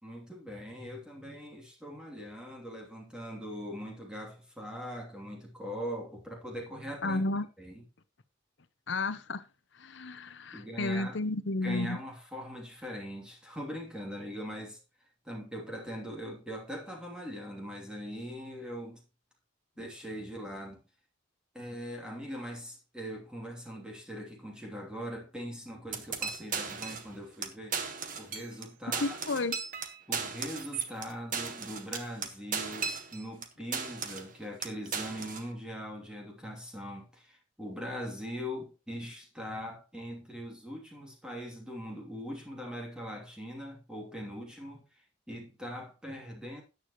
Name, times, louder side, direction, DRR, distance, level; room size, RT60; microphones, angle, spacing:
voice 1, 0.0-7.2 7.6-7.8 10.5-11.2 11.6-14.8 15.2-19.0 19.8-20.8 21.5-27.8 28.2-29.4 30.1-46.6, equal, 5° right, 2.9 m, -41 dB
voice 2, 7.0-7.5 8.9-9.4 9.7-12.0 29.0-29.5, left 2 dB, 65° left, 0.9 m, -32 dB
sound 1, 25.9-27.1 27.4-27.5 27.7-28.7 28.9-33.5 33.7-34.3 34.6-35.5, right 6 dB, 40° right, 1.4 m, -36 dB
13.0 x 9.5 x 3.1 m
head